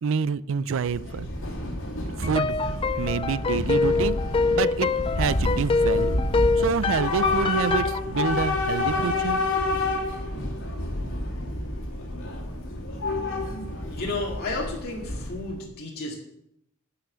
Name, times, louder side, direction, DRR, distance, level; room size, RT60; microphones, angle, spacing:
voice 1, 0.0-1.3 2.1-2.6 3.0-4.2 4.5-4.9 5.2-6.2 6.6-9.4, right 6 dB, 65° right, 18 dB, 0.4 m, -27 dB
Train / Subway metro underground, 0.7-15.6, left 2 dB, 65° left, 2.7 m, -29 dB
sound 1, 2.2-8.0, left 4 dB, 25° left, 0.3 m, -25 dB
voice 2, 13.9-16.1, left 2 dB, 45° left, -3 dB, 2.2 m, -32 dB
11.0 x 5.8 x 7.5 m, 0.80 s
head